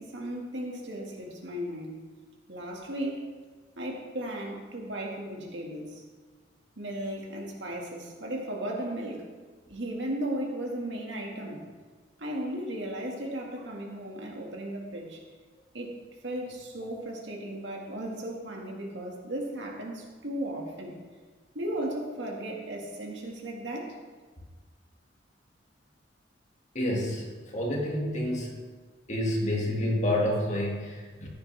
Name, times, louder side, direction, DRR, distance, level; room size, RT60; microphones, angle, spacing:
voice 1, 0.0-2.0 2.5-3.3 3.8-6.0 6.8-9.2 9.7-11.7 12.2-15.2 15.7-20.9 21.5-24.0, right 1 dB, 75° right, 0 dB, 2.0 m, -36 dB
voice 2, 26.7-27.2 27.5-28.6 29.1-31.3, left 1 dB, 40° left, -2 dB, 2.2 m, -28 dB
14.5 x 8.9 x 3.5 m, 1.4 s
head